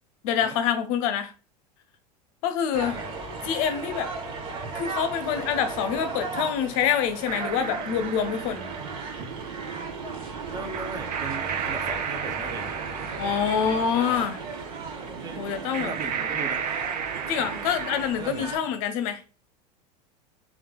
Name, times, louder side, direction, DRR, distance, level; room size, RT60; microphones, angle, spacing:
voice 1, 0.2-1.3 2.4-3.0 3.4-4.1 4.7-8.6 13.2-14.4 15.4-15.9 17.3-19.2, left 8 dB, 55° left, 0.6 m, -26 dB
sound 1, 2.7-18.6, right 3 dB, 60° right, 0.9 m, -36 dB
voice 2, 2.8-3.3 10.5-12.7 13.9-14.3 15.2-15.4 15.8-16.6 18.2-18.7, right 3 dB, 20° right, 0.6 m, -38 dB
sound 2, 7.3-18.1, right 8 dB, 80° right, 0.4 m, -34 dB
4.4 x 2.4 x 2.2 m
hypercardioid pair, 85°, 21 cm